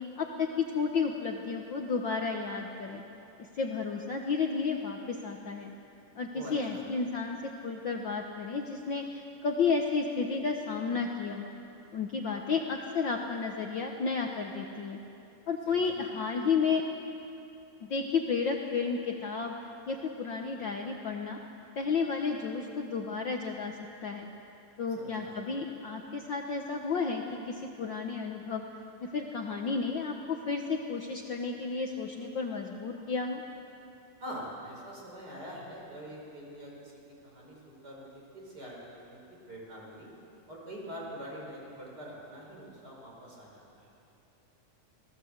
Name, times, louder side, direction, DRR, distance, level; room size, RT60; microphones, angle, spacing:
voice 1, 0.0-3.0 3.5-5.7 6.1-11.5 11.9-15.0 15.5-16.8 17.8-19.5 19.9-21.4 21.7-24.3 24.8-28.6 29.0-33.4, left 5 dB, 75° left, 2 dB, 1.0 m, -32 dB
voice 2, 6.3-6.8 15.7-16.1 25.0-25.4 34.2-36.9 37.2-39.2 39.5-40.1 40.5-43.9, equal, 30° right, -3 dB, 5.9 m, -44 dB
26.0 x 18.5 x 8.0 m, 2.8 s
omnidirectional pair, 3.9 m